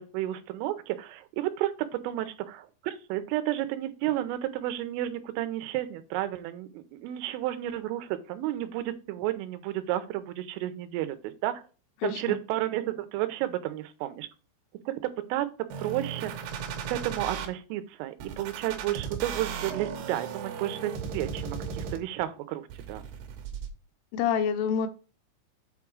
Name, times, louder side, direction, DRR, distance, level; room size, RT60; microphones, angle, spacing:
voice 1, 0.0-11.6 12.0-14.3 14.9-15.0 15.3-15.5 15.8-16.3 16.9-22.6 22.9-23.0, right 14 dB, 85° right, 10 dB, 3.2 m, -32 dB
voice 2, 12.0-12.4 24.1-24.9, left 7 dB, 85° left, 7 dB, 3.2 m, -27 dB
sound 1, 15.7-17.5 18.2-22.2 22.7-23.7, right 6 dB, 70° right, 2.6 m, -36 dB
8.4 x 3.6 x 4.6 m, 0.34 s
omnidirectional pair, 5.7 m